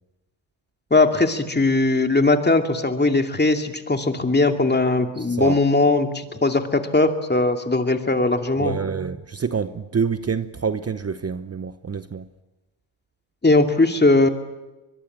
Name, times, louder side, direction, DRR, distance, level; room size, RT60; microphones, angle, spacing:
voice 1, 0.9-8.8 13.4-14.3, left 2 dB, 20° left, 2.6 m, -19 dB
voice 2, 5.2-5.6 8.6-12.3, right 6 dB, 30° right, 0.9 m, -27 dB
24.0 x 22.0 x 8.7 m
cardioid pair, 70°, 46 cm